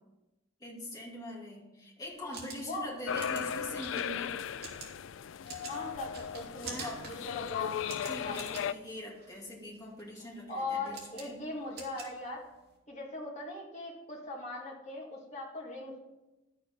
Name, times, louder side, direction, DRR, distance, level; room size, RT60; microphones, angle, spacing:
voice 1, 0.6-4.4 6.6-6.9 8.0-11.4, left 1 dB, 20° left, -3 dB, 2.6 m, -43 dB
sound 1, 2.1-12.8, right 4 dB, 55° right, 2.6 m, -48 dB
sound 2, 3.1-8.7, left 8 dB, 90° left, 0.4 m, -36 dB
voice 2, 5.6-7.7 8.2-8.4 10.5-12.5 12.9-16.0, left 2 dB, 35° left, -2 dB, 2.2 m, -40 dB
11.5 x 6.8 x 5.4 m, 1.0 s
head